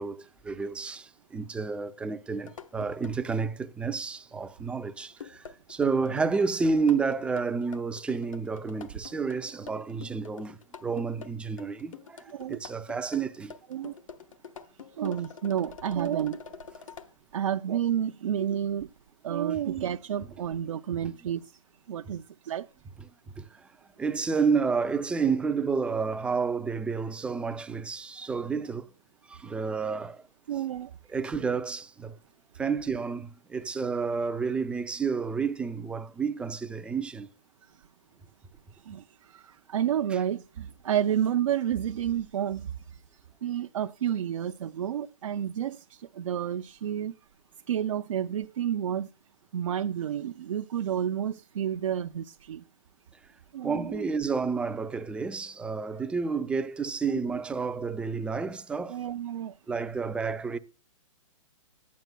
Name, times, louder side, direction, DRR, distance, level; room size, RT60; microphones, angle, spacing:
voice 1, 0.0-12.2 12.5-13.5 23.4-23.5 24.0-28.8 29.3-30.2 31.1-32.2 32.6-37.3 53.6-59.0 59.7-60.6, right 5 dB, 5° right, 0.4 m, -30 dB
sound 1, 2.5-3.1 5.1-17.1, left 6 dB, 75° left, 1.1 m, -46 dB
voice 2, 15.0-16.4 17.3-18.9 19.2-21.4 21.9-22.7 30.5-30.9 38.9-42.7 43.4-47.2 47.7-49.1 49.5-52.6 53.5-54.0 57.1-57.2 58.9-59.5, right 10 dB, 70° right, 0.5 m, -30 dB
12.0 x 9.4 x 2.2 m
hypercardioid pair, 135°, 17 cm